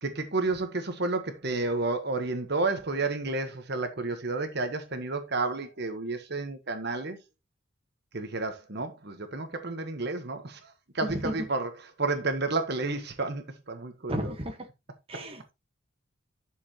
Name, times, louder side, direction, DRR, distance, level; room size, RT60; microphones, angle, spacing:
voice 1, 0.0-7.2 8.1-11.7 12.0-14.3, right 3 dB, 55° right, 1.3 m, -31 dB
voice 2, 11.0-11.5 14.1-14.7 15.1-15.5, right 1 dB, 30° right, 1.4 m, -33 dB
11.0 x 6.8 x 3.0 m
head